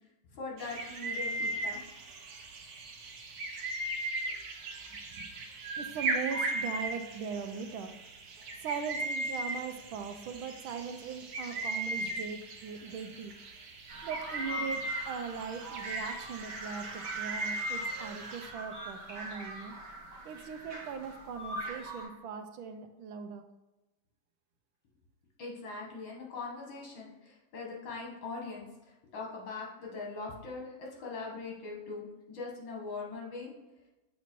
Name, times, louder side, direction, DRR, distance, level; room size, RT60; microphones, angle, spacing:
voice 1, 0.3-1.8 25.4-33.5, left 3 dB, 65° left, -2 dB, 2.2 m, -41 dB
sound 1, 0.6-18.5, right 1 dB, 55° right, 1.2 m, -38 dB
voice 2, 4.9-5.3 5.8-8.0 8.6-13.3 14.0-19.7 20.2-23.4, right 6 dB, 80° right, 7 dB, 1.4 m, -40 dB
sound 2, 13.9-22.0, right 2 dB, 40° right, 2.0 m, -42 dB
7.3 x 4.0 x 4.5 m, 1.1 s
omnidirectional pair, 2.3 m